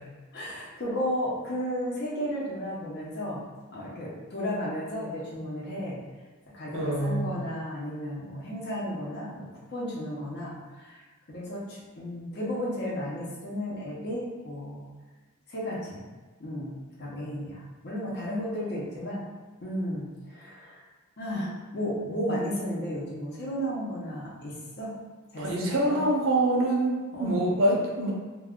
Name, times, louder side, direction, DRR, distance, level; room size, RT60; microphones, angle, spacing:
voice 1, 0.3-3.4 3.7-6.0 6.5-14.9 15.5-16.0 16.4-19.2 19.6-20.8 21.2-25.0 25.3-26.0 27.1-27.4, equal, 50° left, -5 dB, 0.7 m, -34 dB
voice 2, 6.7-7.4 25.4-28.1, right 1 dB, 65° right, -2 dB, 0.6 m, -25 dB
2.3 x 2.3 x 3.5 m, 1.3 s
head